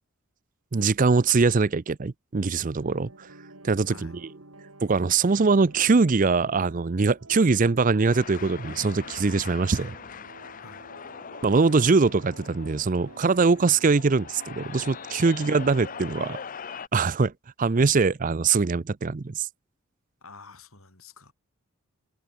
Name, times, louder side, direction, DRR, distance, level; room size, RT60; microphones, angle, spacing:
voice 1, 0.7-3.3 3.6-4.1 4.8-9.9 11.4-16.4 16.9-17.3 17.6-19.5, right 4 dB, 35° right, 0.5 m, -22 dB
sound 1, 2.8-16.4, right 2 dB, 80° right, 5.9 m, -50 dB
voice 2, 3.9-4.2 10.6-10.9 15.4-15.6 20.2-21.3, left 4 dB, 75° left, 6.4 m, -49 dB
sound 2, 8.0-16.9, left 6 dB, 40° left, 0.6 m, -41 dB
head